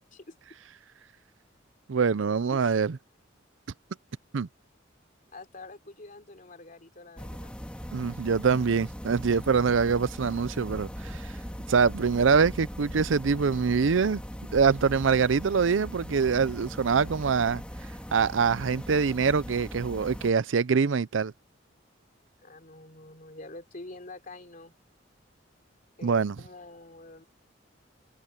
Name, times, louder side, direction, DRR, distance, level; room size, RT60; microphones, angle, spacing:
voice 1, 1.9-2.9 4.3-4.5 7.9-11.3 11.7-14.2 14.5-17.6 18.1-21.3 26.0-26.4, right 5 dB, 90° right, 0.5 m, -24 dB
voice 2, 5.3-7.6 22.4-24.7 26.0-27.2, left 2 dB, 45° left, 3.4 m, -46 dB
sound 1, 7.2-20.3, equal, 5° left, 1.9 m, -40 dB
head